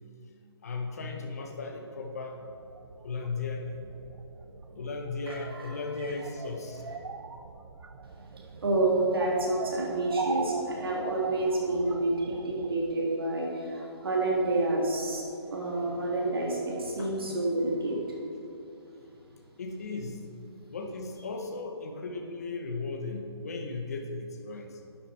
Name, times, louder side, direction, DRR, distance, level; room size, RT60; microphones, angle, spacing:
voice 1, 0.6-2.4 3.0-3.8 4.7-6.8 17.0-17.1 19.6-20.2 20.7-24.8, left 3 dB, 35° left, 3 dB, 0.8 m, -36 dB
sound 1, 2.3-12.8, right 4 dB, 75° right, 0.7 m, -41 dB
voice 2, 5.3-6.1 6.8-6.9 8.1-15.2 15.5-18.2, right 2 dB, 55° right, -2 dB, 1.7 m, -29 dB
11.5 x 6.6 x 4.3 m, 2.8 s
hypercardioid pair, 180°, 15 cm